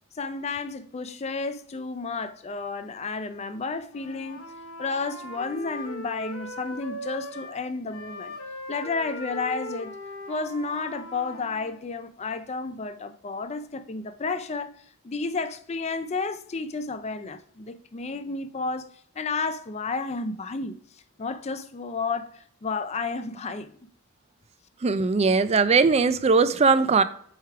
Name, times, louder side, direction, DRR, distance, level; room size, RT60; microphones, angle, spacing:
voice 1, 0.1-4.4 4.8-8.3 8.7-9.9 10.3-14.7 15.0-18.9 19.2-20.8 21.2-23.7, left 4 dB, 30° left, 0.4 m, -31 dB
Wind instrument woodwind instrument, 3.9-7.6 7.9-11.7, equal, 80° left, 1.0 m, -39 dB
voice 2, 24.8-27.0, right 4 dB, 30° right, 0.4 m, -20 dB
7.9 x 3.3 x 4.7 m
head